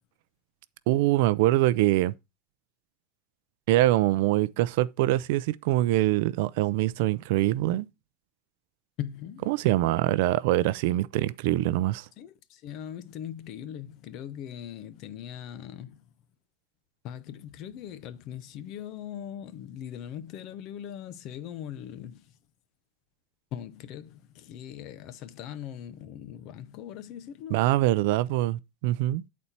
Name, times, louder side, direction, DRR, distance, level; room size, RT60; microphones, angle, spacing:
voice 1, 0.9-2.1 3.7-7.9 9.5-12.1 27.5-29.2, right 16 dB, 65° right, 0.4 m, -24 dB
voice 2, 9.0-9.5 12.2-16.1 17.0-22.3 23.5-27.7, left 10 dB, 45° left, 0.7 m, -40 dB
9.6 x 4.2 x 4.2 m
supercardioid pair, 165°, 0 cm